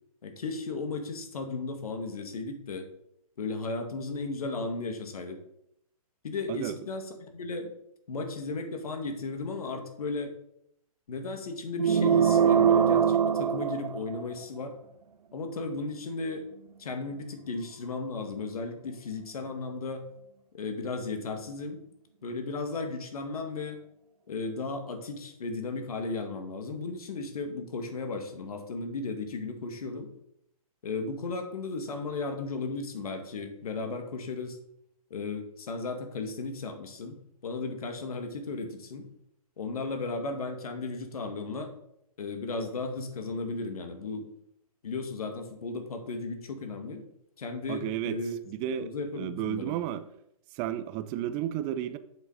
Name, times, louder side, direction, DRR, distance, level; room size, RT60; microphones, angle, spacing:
voice 1, 0.2-2.8 3.4-5.4 6.2-7.7 8.1-10.3 11.1-14.8 15.3-16.5 16.8-20.1 20.5-21.8 22.2-23.8 24.3-30.1 30.8-34.6 35.1-39.1 39.6-41.7 42.2-44.3 44.8-47.0 47.4-48.3 48.8-49.8, left 3 dB, 75° left, 5 dB, 1.9 m, -35 dB
sound 1, 11.8-14.4, right 8 dB, 90° right, 0.5 m, -23 dB
voice 2, 47.7-48.2 48.5-48.9 49.2-50.0 50.5-52.0, right 11 dB, 25° right, 12 dB, 0.6 m, -32 dB
7.4 x 6.2 x 4.8 m, 0.75 s
hypercardioid pair, 140°, 19 cm